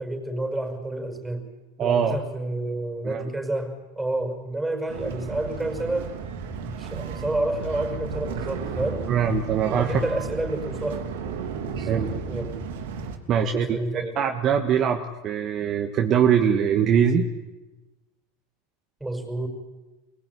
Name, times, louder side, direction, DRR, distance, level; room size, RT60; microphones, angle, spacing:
voice 1, 0.0-1.5 1.8-6.1 6.6-9.1 9.7-11.1 11.7-12.6 13.4-14.2 19.0-19.5, right 2 dB, 5° right, 4 dB, 5.8 m, -30 dB
voice 2, 1.8-2.2 3.0-3.3 9.1-10.0 11.9-12.1 13.3-17.3, right 7 dB, 40° right, 4 dB, 1.8 m, -22 dB
sound 1, 4.9-13.2, right 5 dB, 75° right, 3.2 m, -34 dB
24.0 x 19.5 x 9.9 m, 1.1 s
hypercardioid pair, 100°, 0 cm